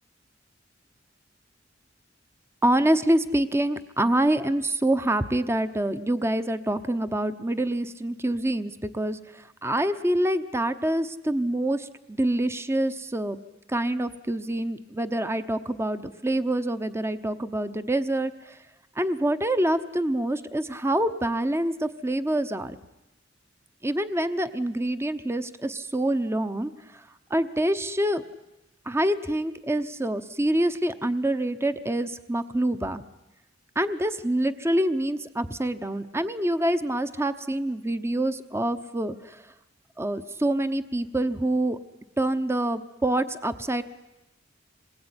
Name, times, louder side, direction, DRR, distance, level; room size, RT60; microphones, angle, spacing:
voice 1, 2.6-13.4 13.7-18.6 19.0-22.8 23.8-27.0 27.3-28.2 28.9-33.0 33.8-39.4 40.0-41.8 42.2-43.8, right 1 dB, 15° right, 11 dB, 0.9 m, -26 dB
26.5 x 21.0 x 9.8 m, 1.0 s
head